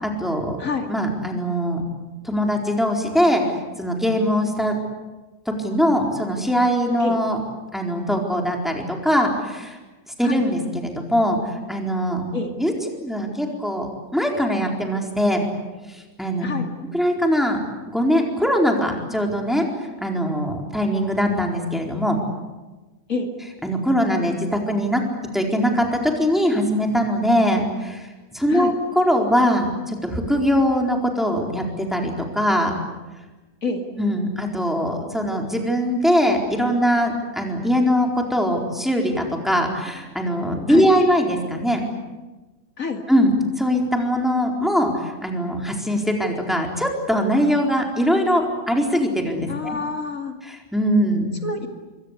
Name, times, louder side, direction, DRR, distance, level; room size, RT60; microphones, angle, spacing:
voice 1, 0.0-0.6 0.9-1.8 2.2-3.4 3.8-4.8 5.6-7.4 7.7-9.8 10.2-12.2 12.6-12.7 13.0-15.5 15.9-16.5 16.9-17.6 17.9-19.7 20.0-22.2 23.6-25.0 25.3-28.1 28.3-32.7 34.0-41.9 43.1-43.3 43.6-49.8 50.4-51.3, equal, ahead, 1 dB, 4.2 m, -21 dB
voice 2, 49.5-50.3 51.4-51.7, left 4 dB, 80° left, 4 dB, 2.9 m, -27 dB
26.5 x 24.0 x 8.3 m, 1.2 s
omnidirectional pair, 1.4 m